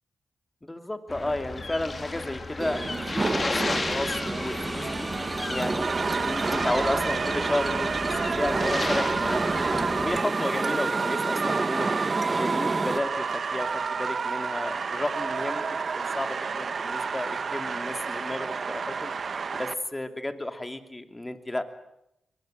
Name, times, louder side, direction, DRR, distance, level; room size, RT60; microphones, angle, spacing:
voice 1, 0.6-5.1 5.5-11.9 12.4-15.6 16.0-19.1 19.5-21.6, left 1 dB, 20° left, 8 dB, 2.9 m, -33 dB
sound 1, 1.1-10.2, left 3 dB, 40° left, 3.3 m, -34 dB
sound 2, 2.6-13.0, right 3 dB, 35° right, 1.4 m, -30 dB
sound 3, 5.8-19.7, right 5 dB, 60° right, 1.2 m, -30 dB
23.0 x 20.5 x 9.1 m, 0.84 s
supercardioid pair, 45°, 0 cm